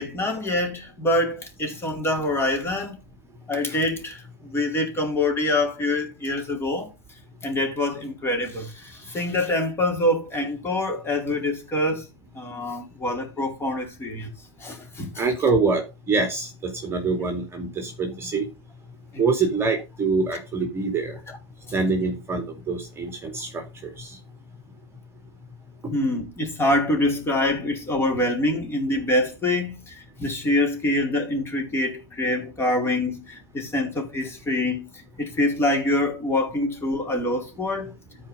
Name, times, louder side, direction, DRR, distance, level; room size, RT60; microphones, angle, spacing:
voice 1, 0.0-3.0 3.5-6.9 7.4-12.1 12.3-14.3 14.6-15.2 19.1-19.2 21.3-21.4 25.9-34.9 35.2-37.9, left 1 dB, 15° left, 4.4 m, -25 dB
voice 2, 15.2-18.5 19.2-21.2 21.7-24.2, right 4 dB, 15° right, 2.8 m, -25 dB
13.0 x 5.1 x 5.5 m
hypercardioid pair, 115°, 14 cm